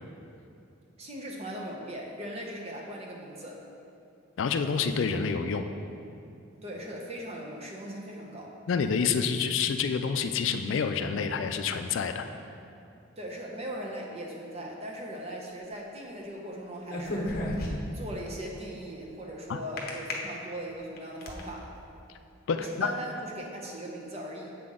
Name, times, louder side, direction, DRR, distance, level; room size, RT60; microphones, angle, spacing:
voice 1, 1.0-3.6 6.6-8.5 13.2-17.4 17.9-21.7 22.5-24.5, right 1 dB, 30° right, -1 dB, 0.8 m, -39 dB
voice 2, 4.4-5.7 8.7-12.3 19.5-19.6 22.5-22.9, left 6 dB, 65° left, 8 dB, 0.3 m, -28 dB
sound 1, 16.8-18.1 19.8-20.1 20.7-21.4, left 1 dB, 45° left, 0.8 m, -32 dB
7.5 x 5.8 x 3.7 m, 2.6 s
head